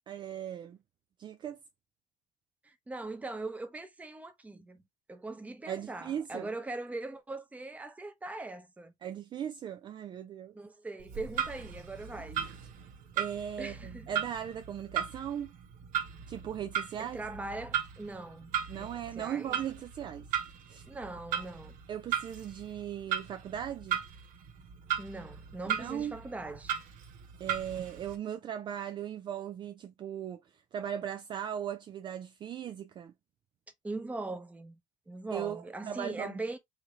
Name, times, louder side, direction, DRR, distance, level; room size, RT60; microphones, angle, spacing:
voice 1, 0.1-0.8 1.2-1.6 5.7-6.5 9.0-10.5 12.3-12.5 13.2-15.5 16.3-17.2 18.7-20.3 20.7-20.8 21.9-24.0 25.7-26.2 27.4-30.4 30.7-33.1 35.3-36.3, right 9 dB, 35° right, 0.4 m, -38 dB
voice 2, 2.6-4.8 5.1-8.9 10.5-12.4 13.6-14.1 17.0-18.9 19.2-19.6 20.8-21.8 25.0-26.7 33.8-34.8 35.1-36.6, right 2 dB, 10° right, 0.8 m, -41 dB
Clock, 11.0-28.2, right 9 dB, 80° right, 1.2 m, -37 dB
5.0 x 2.7 x 3.2 m
cardioid pair, 160°, 14 cm